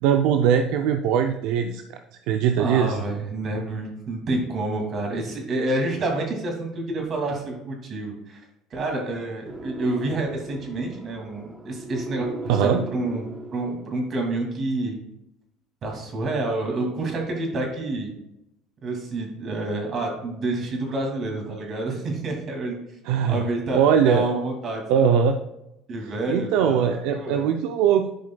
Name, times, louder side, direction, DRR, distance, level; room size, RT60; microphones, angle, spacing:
voice 1, 0.0-2.0 2.3-3.0 12.5-12.8 23.0-23.4 23.7-24.3 24.9-25.4 26.3-28.1, right 8 dB, 75° right, 6 dB, 0.4 m, -21 dB
voice 2, 2.6-8.4 8.7-13.3 13.5-15.0 15.8-18.1 18.8-22.8 23.2-25.1 25.9-27.5, right 2 dB, 45° right, 1 dB, 2.3 m, -28 dB
sound 1, 9.5-14.1, right 1 dB, 15° right, 1.0 m, -38 dB
11.0 x 5.1 x 2.3 m, 0.86 s
supercardioid pair, 90°, 0 cm